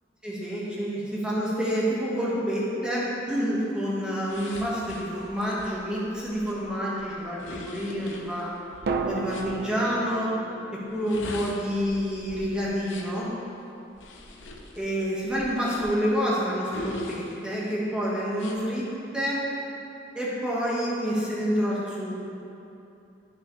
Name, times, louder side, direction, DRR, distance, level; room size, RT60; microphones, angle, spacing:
voice 1, 0.2-8.5 9.0-10.3 10.7-13.3 14.7-18.9 19.1-19.4 20.1-22.1, equal, 5° right, -7 dB, 1.4 m, -28 dB
sound 1, 4.3-9.5 10.9-13.2 13.9-16.1 16.7-17.7 18.3-18.6, left 2 dB, 85° left, 0.8 m, -42 dB
sound 2, 8.9-12.8 13.1-13.2, right 4 dB, 55° right, 0.4 m, -35 dB
10.5 x 6.2 x 3.2 m, 2.8 s
head